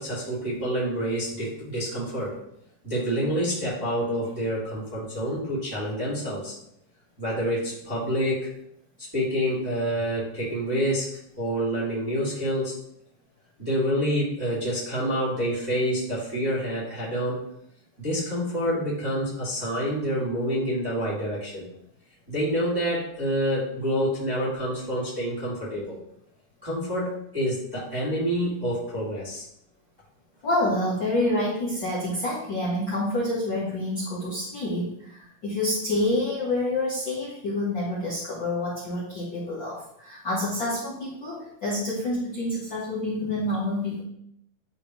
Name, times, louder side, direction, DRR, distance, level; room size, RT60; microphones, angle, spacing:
voice 1, 0.0-2.4 2.8-6.5 7.2-8.5 9.0-11.1 11.4-12.7 13.6-17.4 18.0-21.7 22.3-26.0 26.6-29.4, equal, 10° right, -8 dB, 1.9 m, -27 dB
voice 2, 30.4-44.0, left 1 dB, 45° left, -9 dB, 1.7 m, -28 dB
10.5 x 3.6 x 3.1 m, 0.75 s
omnidirectional pair, 3.7 m